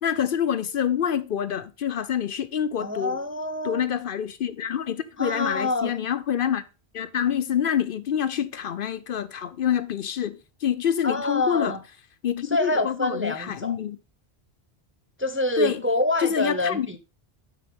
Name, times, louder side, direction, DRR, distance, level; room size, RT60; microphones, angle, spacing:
voice 1, 0.0-3.2 3.6-6.6 6.9-11.7 12.2-14.0 15.6-15.8 16.2-17.0, left 9 dB, 60° left, 0.7 m, -26 dB
voice 2, 2.8-3.8 5.2-5.9 11.0-11.8 12.5-13.7 15.2-17.0, left 2 dB, 15° right, 0.5 m, -26 dB
9.2 x 6.2 x 3.6 m
omnidirectional pair, 1.1 m